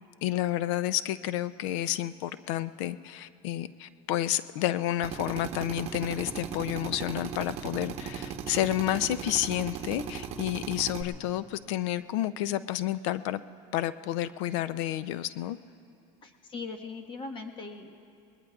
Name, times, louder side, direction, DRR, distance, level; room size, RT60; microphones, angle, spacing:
voice 1, 0.2-13.4 13.7-15.6, left 13 dB, 75° left, 15 dB, 0.5 m, -30 dB
Drill, 5.0-11.0, right 8 dB, 40° right, 1.0 m, -38 dB
voice 2, 16.2-17.9, left 4 dB, 30° left, 3 dB, 1.4 m, -40 dB
27.0 x 20.5 x 2.4 m, 2.6 s
supercardioid pair, 135°, 16 cm